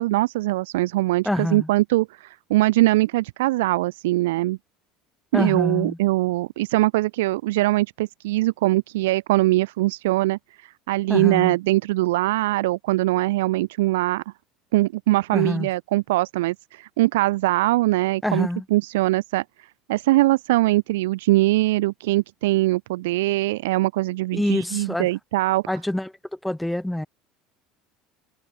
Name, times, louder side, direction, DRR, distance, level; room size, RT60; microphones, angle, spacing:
voice 1, 0.0-4.6 5.3-14.2 14.7-19.4 19.9-25.6, right 18 dB, 70° right, 0.5 m, -22 dB
voice 2, 1.2-1.7 5.3-6.0 11.1-11.6 15.3-15.7 18.2-18.6 24.3-25.1 25.7-26.1 26.4-27.1, left 1 dB, 5° left, 1.4 m, -25 dB
figure-of-eight pair, 70°, 0 cm